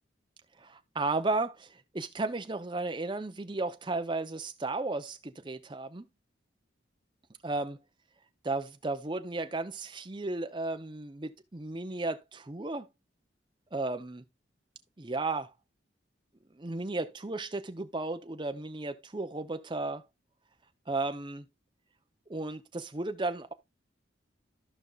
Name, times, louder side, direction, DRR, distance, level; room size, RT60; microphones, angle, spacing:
voice 1, 0.6-6.1 7.4-7.8 8.4-12.9 13.7-14.2 15.0-15.5 16.5-20.0 20.9-21.5 22.3-23.5, right 2 dB, 25° right, 0.7 m, -34 dB
14.0 x 5.4 x 2.4 m
head